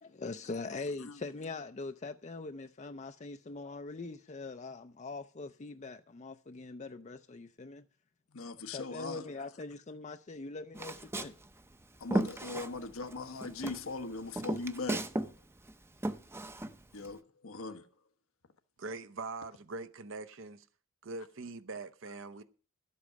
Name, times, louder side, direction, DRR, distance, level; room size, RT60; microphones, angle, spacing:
voice 1, 0.0-7.8 8.7-11.4, left 3 dB, 35° left, 0.5 m, -42 dB
voice 2, 8.3-9.2 12.0-15.3 16.9-17.9, left 3 dB, 85° left, 1.1 m, -40 dB
Walk footsteps, 10.7-13.2 13.4-15.3 15.6-17.1, right 1 dB, 10° right, 0.6 m, -35 dB
voice 3, 18.8-20.6 21.0-22.4, right 3 dB, 65° right, 0.8 m, -42 dB
12.5 x 8.4 x 6.2 m
head